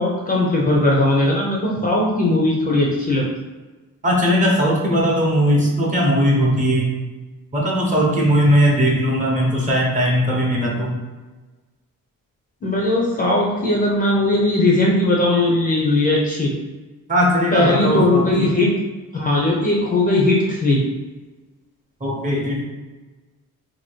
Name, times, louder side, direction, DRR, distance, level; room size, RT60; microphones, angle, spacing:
voice 1, 0.0-3.3 12.6-16.5 17.5-18.7 19.1-20.8, left 2 dB, 25° left, -3 dB, 0.5 m, -18 dB
voice 2, 4.0-6.9 7.5-11.0 17.1-18.6 22.0-22.6, equal, 25° right, -3 dB, 0.8 m, -18 dB
2.8 x 2.7 x 4.3 m, 1.2 s
cardioid pair, 160°, 33 cm